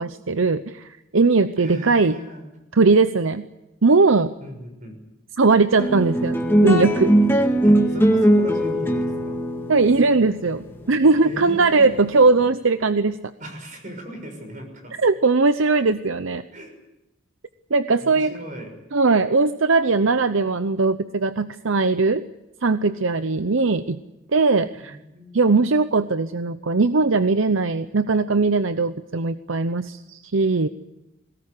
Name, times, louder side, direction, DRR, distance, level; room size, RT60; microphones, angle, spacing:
voice 1, 0.0-2.2 2.7-3.4 3.8-4.3 5.4-7.1 9.7-13.2 15.0-16.4 17.7-18.3 18.9-22.2 22.6-24.0 24.3-25.0 25.3-30.7, right 3 dB, 70° right, 11 dB, 0.8 m, -19 dB
voice 2, 1.6-2.4 4.4-5.0 7.6-9.4 11.2-11.9 13.4-14.9 16.5-16.7 18.0-18.7 24.7-25.6, equal, 40° right, 5 dB, 6.3 m, -37 dB
sound 1, 5.8-12.4, right 1 dB, 10° left, 2.0 m, -20 dB
22.0 x 18.5 x 9.9 m, 0.94 s
head